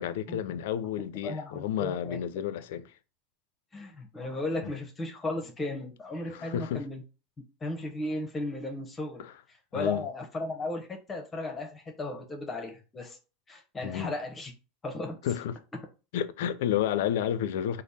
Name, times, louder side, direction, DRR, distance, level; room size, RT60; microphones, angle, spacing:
voice 1, 0.0-2.9 4.6-4.7 6.3-6.9 9.2-9.3 9.7-10.1 13.8-14.1 15.2-15.6 16.1-17.8, left 10 dB, 75° left, 0.4 m, -31 dB
voice 2, 1.2-2.2 3.7-7.0 7.6-13.2 13.5-14.5 14.8-15.2, left 2 dB, 20° left, 0.8 m, -35 dB
3.3 x 2.0 x 4.1 m
hypercardioid pair, 95°, 0 cm